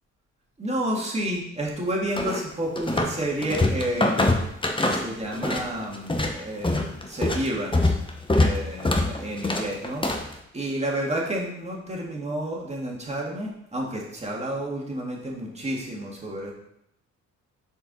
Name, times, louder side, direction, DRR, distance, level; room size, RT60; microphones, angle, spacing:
voice 1, 0.6-4.3 4.8-7.9 8.3-16.5, right 1 dB, 20° right, -2 dB, 2.1 m, -30 dB
sound 1, 2.2-3.2 3.4-5.7 5.9-10.3, left 2 dB, 15° left, 1.0 m, -24 dB
6.8 x 4.8 x 4.2 m, 0.78 s
cardioid pair, 90°, 30 cm